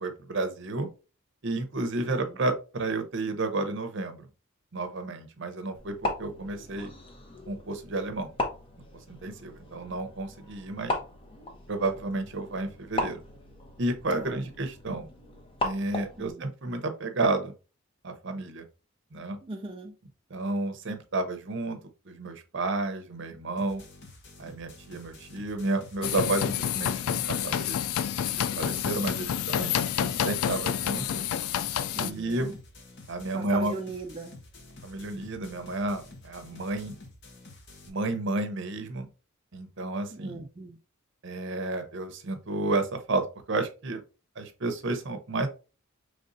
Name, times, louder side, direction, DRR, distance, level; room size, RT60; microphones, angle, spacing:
voice 1, 0.0-0.9 1.4-4.3 4.7-6.9 7.5-8.3 9.1-11.0 11.7-13.2 13.8-15.1 15.6-17.5 18.0-18.6 19.1-19.4 20.3-21.8 22.1-23.8 24.4-27.8 28.4-31.2 32.0-32.5 33.1-33.7 34.8-36.9 37.9-39.1 39.5-40.4 41.2-44.0 44.4-45.5, right 2 dB, 55° right, 8 dB, 0.7 m, -31 dB
voice 2, 2.1-2.4 14.1-14.5 16.2-16.5 19.4-20.0 31.9-32.6 33.3-34.4 40.1-40.8, right 3 dB, 25° right, 2 dB, 0.3 m, -40 dB
sound 1, 5.8-16.3, left 1 dB, 25° left, 0.7 m, -37 dB
sound 2, 23.6-37.9, left 2 dB, 55° left, 0.8 m, -50 dB
sound 3, 26.0-32.1, left 9 dB, 85° left, 0.3 m, -29 dB
5.2 x 3.2 x 2.6 m, 0.33 s
head